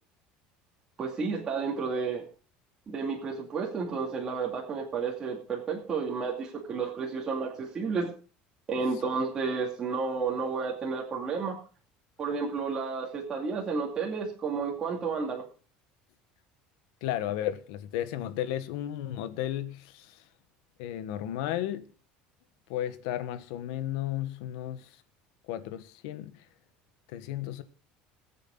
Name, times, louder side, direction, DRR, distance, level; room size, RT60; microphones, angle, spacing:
voice 1, 1.0-2.2 2.9-8.1 8.7-11.6 12.2-15.4, right 5 dB, 20° right, 2.6 m, -31 dB
voice 2, 17.0-20.2 20.8-21.8 22.7-24.9 25.5-26.4 27.1-27.6, left 12 dB, 80° left, 1.4 m, -34 dB
21.0 x 8.3 x 4.0 m
cardioid pair, 175°, 3 cm